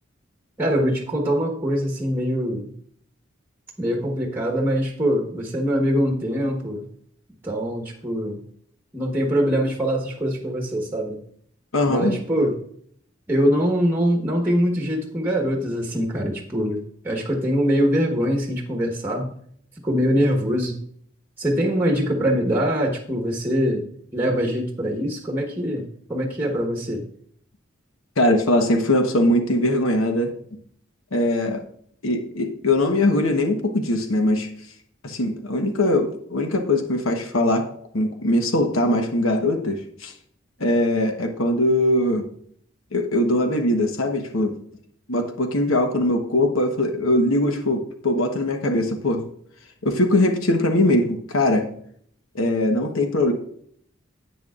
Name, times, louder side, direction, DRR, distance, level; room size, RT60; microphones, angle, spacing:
voice 1, 0.6-2.7 3.8-6.8 7.4-8.4 8.9-11.2 11.8-12.6 13.3-19.3 19.8-20.8 21.4-23.8 24.1-27.0, equal, 10° right, 1 dB, 1.3 m, -23 dB
voice 2, 11.7-12.2 28.2-30.3 31.1-31.6 32.0-34.5 35.0-37.7 37.9-40.1 40.6-42.3 42.9-44.6 45.1-49.2 49.8-51.7 52.3-53.3, left 1 dB, 85° left, 5 dB, 1.1 m, -21 dB
11.0 x 8.3 x 2.4 m, 0.62 s
head